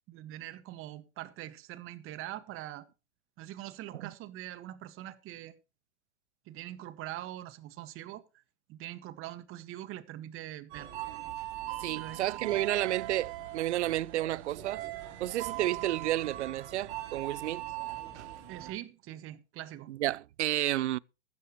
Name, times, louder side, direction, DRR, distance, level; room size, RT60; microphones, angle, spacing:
voice 1, 0.1-2.9 3.4-5.5 6.5-8.4 8.7-10.9 12.0-12.2 12.5-12.6 18.5-19.9, right 14 dB, 35° right, 1.7 m, -43 dB
sound 1, 10.7-18.7, right 14 dB, 60° right, 3.6 m, -40 dB
voice 2, 11.8-14.9 15.2-17.7 18.1-18.3 19.9-21.0, right 14 dB, 75° right, 0.6 m, -31 dB
15.0 x 13.0 x 3.0 m
hypercardioid pair, 110°, 35 cm